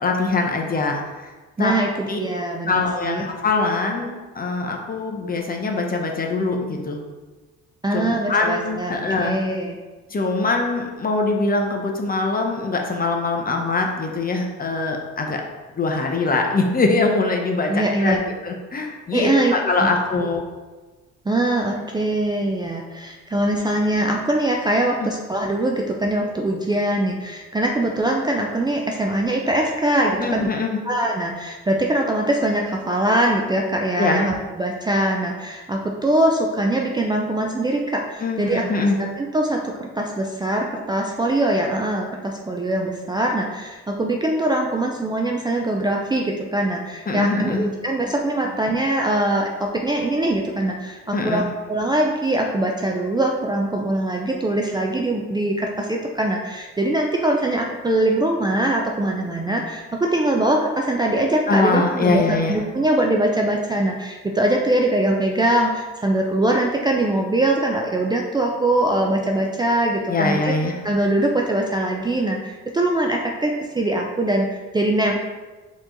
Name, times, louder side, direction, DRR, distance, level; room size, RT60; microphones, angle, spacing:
voice 1, 0.0-1.3 1.6-1.7 2.1-2.2 2.7-7.0 7.9-9.4 10.1-15.4 15.8-20.4 25.0-25.1 30.2-30.8 34.0-34.2 38.2-39.0 47.1-47.7 51.1-51.5 61.5-62.6 70.1-70.8, left 3 dB, 30° left, 1 dB, 0.7 m, -23 dB
voice 2, 1.6-3.2 7.8-9.8 17.7-18.2 19.1-19.5 19.8-19.9 20.1-20.3 21.3-30.5 30.9-38.7 39.0-39.6 40.0-51.4 51.7-70.5 70.8-75.2, right 1 dB, 15° right, 0 dB, 0.4 m, -22 dB
4.4 x 3.0 x 3.8 m, 1.3 s
cardioid pair, 90°, 30 cm